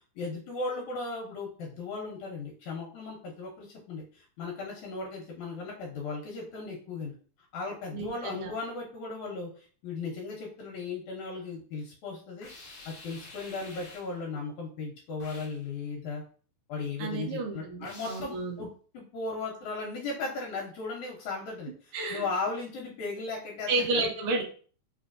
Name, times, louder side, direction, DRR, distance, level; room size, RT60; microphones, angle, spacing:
voice 1, 0.2-7.1 7.5-12.5 12.9-16.2 16.7-18.7 18.9-21.7 22.1-24.1, left 3 dB, 75° left, -2 dB, 2.1 m, -36 dB
voice 2, 7.9-8.5 17.0-18.6 21.9-22.2 23.7-24.4, right 3 dB, 70° right, 0 dB, 1.4 m, -31 dB
sound 1, 12.4-14.2 15.2-15.6 17.8-18.4, left 2 dB, 55° left, 1.7 m, -48 dB
4.5 x 3.1 x 2.5 m, 0.42 s
omnidirectional pair, 3.5 m